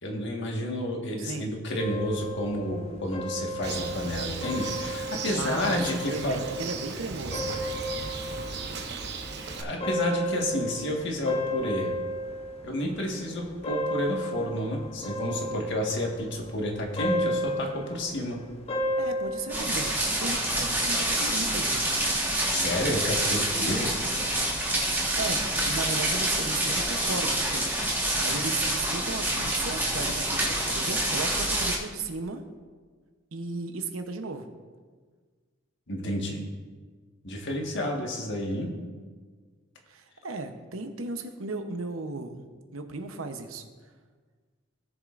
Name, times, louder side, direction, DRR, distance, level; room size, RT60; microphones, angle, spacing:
voice 1, 0.0-6.4 9.6-11.9 12.6-18.4 22.5-23.9 35.9-36.4 37.2-38.7, left 1 dB, 60° left, 0 dB, 1.6 m, -30 dB
voice 2, 1.2-1.5 5.3-7.5 19.0-21.9 24.8-32.4 33.3-34.5 39.9-42.5 42.7-43.7, right 3 dB, 80° right, 7 dB, 0.9 m, -36 dB
sound 1, 1.8-20.0, equal, 30° left, 0.9 m, -34 dB
Bird, 3.6-9.6, right 4 dB, 55° right, 0.9 m, -36 dB
sound 2, 19.5-31.8, right 1 dB, 10° right, 1.4 m, -27 dB
17.5 x 7.3 x 2.5 m, 1.5 s
head